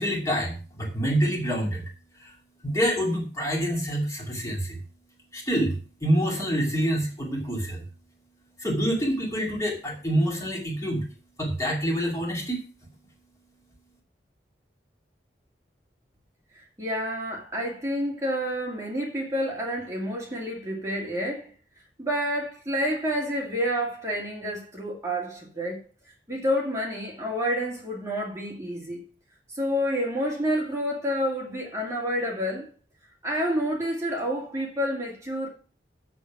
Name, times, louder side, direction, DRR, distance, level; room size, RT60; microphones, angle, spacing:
voice 1, 0.0-1.8 2.2-2.3 2.6-4.8 5.3-7.8 8.6-11.0 11.4-12.6, equal, 20° left, 2.5 m, -26 dB
voice 2, 16.8-21.5 22.0-25.8 26.3-29.0 29.5-32.7 33.2-35.5, equal, 15° right, 2.4 m, -29 dB
7.3 x 7.3 x 6.0 m
head